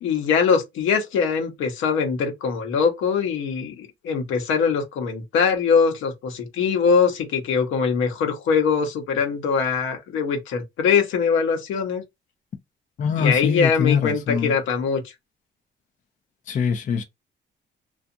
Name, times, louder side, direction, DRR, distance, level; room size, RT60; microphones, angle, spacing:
voice 1, 0.0-12.0 13.2-15.0, left 6 dB, 85° left, 0.9 m, -22 dB
voice 2, 13.0-14.5 16.5-17.0, left 6 dB, 40° left, 0.4 m, -23 dB
2.6 x 2.4 x 2.5 m
cardioid pair, 90°, 20 cm